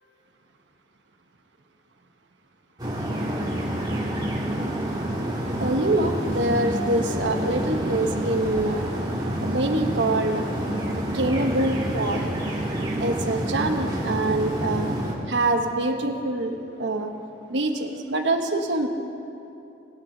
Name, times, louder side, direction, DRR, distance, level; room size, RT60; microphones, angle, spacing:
sound 1, 2.8-15.1, right 1 dB, 20° right, 1.7 m, -28 dB
voice 1, 5.6-8.9 9.4-10.4 11.1-12.2 12.7-14.9 15.3-17.1 17.5-18.9, right 2 dB, 70° right, 4 dB, 1.1 m, -25 dB
20.5 x 8.8 x 3.9 m, 2.8 s
head